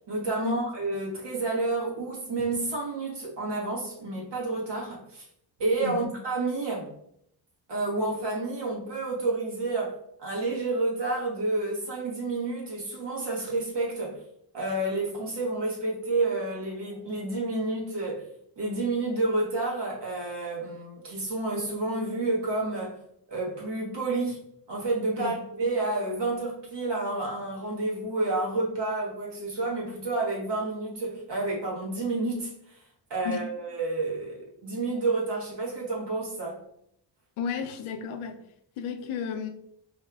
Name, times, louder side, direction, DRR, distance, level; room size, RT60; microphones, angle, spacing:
voice 1, 0.1-5.2 5.6-6.9 7.7-14.2 14.5-18.3 18.6-23.0 23.3-32.8 33.1-36.6, right 2 dB, 60° right, -3 dB, 1.4 m, -30 dB
voice 2, 5.8-6.2 25.2-25.3 33.2-33.4 37.4-38.4 38.8-39.5, left 6 dB, 90° left, 8 dB, 0.6 m, -33 dB
4.3 x 2.7 x 2.3 m, 0.72 s
cardioid pair, 75°, 48 cm